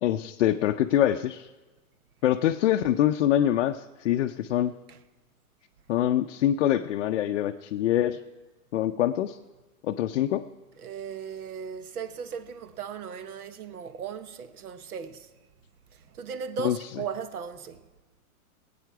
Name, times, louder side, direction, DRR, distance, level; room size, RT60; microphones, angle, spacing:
voice 1, 0.0-1.5 2.2-4.7 5.9-8.2 8.7-9.4 9.8-10.4 16.6-16.8, left 12 dB, 55° left, 0.5 m, -24 dB
voice 2, 10.8-15.3 15.9-17.9, right 7 dB, 80° right, 1.1 m, -37 dB
19.5 x 8.7 x 4.6 m
hypercardioid pair, 160°, 44 cm